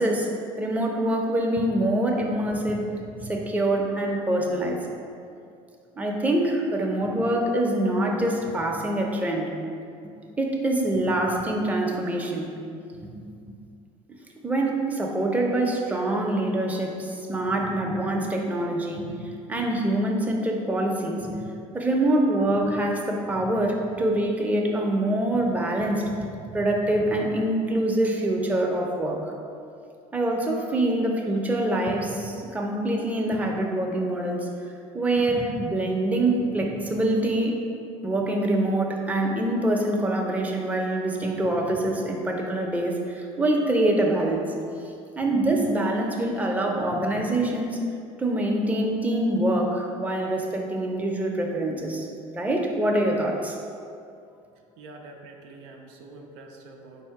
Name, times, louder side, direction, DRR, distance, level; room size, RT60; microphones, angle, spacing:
voice 1, 0.0-4.8 6.0-9.5 10.4-12.5 13.0-13.1 14.4-19.2 19.5-21.4 21.7-26.3 26.5-29.3 30.1-34.5 34.9-37.6 38.0-44.5 45.2-47.8 48.2-52.1 52.3-53.6, right 1 dB, 10° right, 0 dB, 0.6 m, -25 dB
voice 2, 54.8-57.1, right 2 dB, 90° right, 1 dB, 0.5 m, -45 dB
4.1 x 2.7 x 4.6 m, 2.4 s
supercardioid pair, 95°, 14 cm